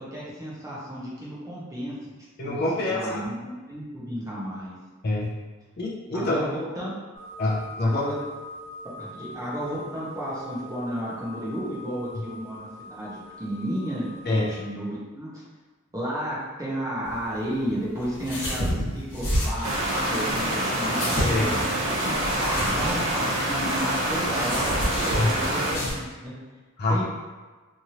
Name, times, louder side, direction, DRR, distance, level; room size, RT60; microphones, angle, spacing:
voice 1, 0.0-2.0 2.4-2.5 2.9-4.7 6.1-6.9 7.8-8.2 9.0-15.4 15.9-19.8 20.1-21.6 22.1-26.3 26.9-27.0, equal, 15° right, -7 dB, 0.7 m, -32 dB
voice 2, 2.4-3.2 5.0-5.4 5.8-6.4 7.4-8.0 14.3-14.5 21.2-21.5 25.1-25.3 26.8-27.0, left 2 dB, 45° left, -4 dB, 0.5 m, -25 dB
sound 1, 7.1-14.6, left 1 dB, 25° left, 1.2 m, -43 dB
sound 2, 17.0-25.9, equal, 75° left, 1.1 m, -31 dB
sound 3, 19.6-25.7, right 1 dB, 75° right, 0.8 m, -26 dB
3.0 x 2.6 x 2.8 m, 1.3 s
head